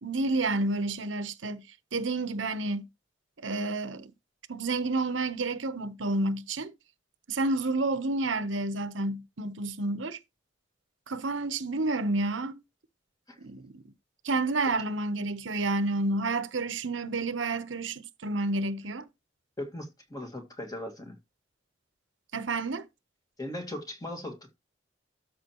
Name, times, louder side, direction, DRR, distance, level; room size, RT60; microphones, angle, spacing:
voice 1, 0.0-1.6 1.9-2.9 3.4-4.1 4.5-6.7 7.3-10.2 11.1-12.5 13.4-13.8 14.2-19.1 22.3-22.9, right 2 dB, 85° right, 1.0 m, -30 dB
voice 2, 19.6-21.2 23.4-24.5, left 1 dB, 20° left, 2.0 m, -38 dB
13.0 x 5.8 x 3.1 m
head